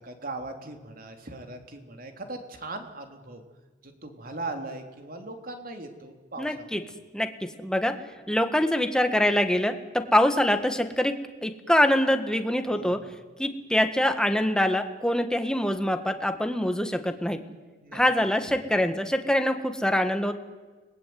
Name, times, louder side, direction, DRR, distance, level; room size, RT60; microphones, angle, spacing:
voice 1, 0.0-3.4 3.8-6.8 12.7-12.9 17.8-18.0, right 2 dB, 50° right, 5 dB, 3.4 m, -39 dB
voice 2, 6.4-6.8 7.1-7.9 8.3-11.1 11.4-13.0 13.4-17.4 17.9-20.3, left 1 dB, 5° left, 7 dB, 1.8 m, -24 dB
30.0 x 20.5 x 9.6 m, 1.3 s
head